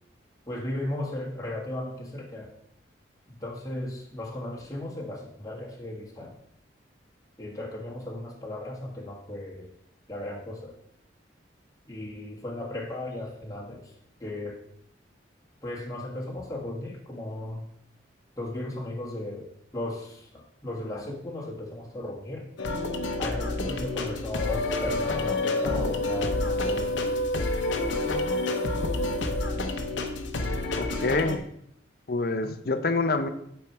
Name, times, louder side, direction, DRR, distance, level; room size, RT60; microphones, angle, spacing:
voice 1, 0.5-2.5 3.3-6.3 7.4-9.7 10.1-10.7 11.9-13.9 14.2-14.6 15.6-17.7 18.4-22.5 23.2-27.2 32.4-32.6, left 1 dB, 20° left, -3 dB, 1.5 m, -36 dB
sound 1, 22.6-31.4, left 2 dB, 85° left, 0.8 m, -28 dB
voice 2, 30.8-31.4 32.1-33.3, left 3 dB, 55° left, 9 dB, 0.6 m, -26 dB
8.7 x 4.4 x 4.6 m, 0.73 s
head